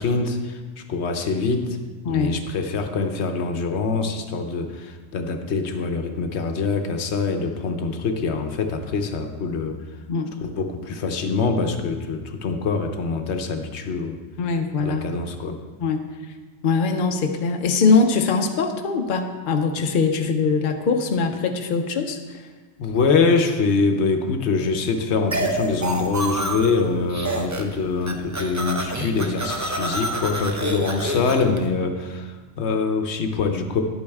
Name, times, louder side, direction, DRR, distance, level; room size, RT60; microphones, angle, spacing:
voice 1, 0.0-1.8 2.1-9.8 10.4-14.2 14.8-15.6 22.8-33.8, left 4 dB, 75° left, 6 dB, 1.0 m, -24 dB
voice 2, 2.0-2.4 10.1-10.3 14.4-15.1 15.8-16.0 16.6-22.4, left 4 dB, 55° left, 4 dB, 0.8 m, -22 dB
sound 1, 25.3-26.8 27.1-27.8 28.0-31.6, right 1 dB, 20° right, 0.6 m, -28 dB
11.0 x 8.5 x 3.5 m, 1.4 s
omnidirectional pair, 1.2 m